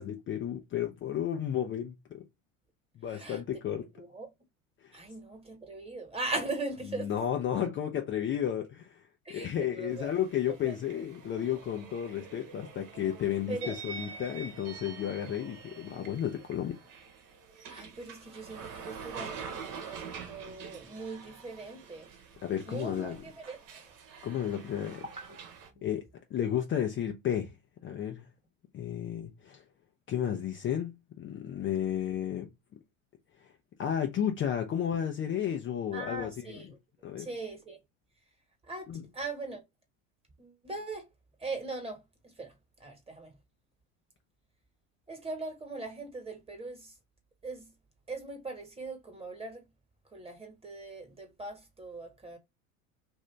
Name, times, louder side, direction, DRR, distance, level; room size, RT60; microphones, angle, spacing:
voice 1, 0.0-2.2 3.0-3.9 4.8-4.9 6.9-9.0 9.3-16.8 22.4-23.2 24.2-25.0 25.8-26.0 26.3-27.5 27.8-28.2 28.7-29.6 30.1-32.5 33.8-36.6 37.0-37.3 38.9-39.0, left 9 dB, 30° left, 0.5 m, -32 dB
voice 2, 3.1-3.4 3.8-4.3 4.9-7.1 9.2-10.1 10.5-10.7 13.5-13.8 17.7-22.1 22.7-23.8 25.2-25.4 25.7-25.9 35.9-36.8 37.2-37.8 38.7-39.6 40.4-41.1 41.4-42.5 42.8-43.3 45.1-46.9 47.4-47.7 48.1-49.7 50.1-52.4, right 3 dB, 15° right, 1.4 m, -40 dB
sound 1, 9.9-25.7, right 6 dB, 50° right, 1.1 m, -46 dB
2.7 x 2.6 x 3.2 m
hypercardioid pair, 90°, 40 cm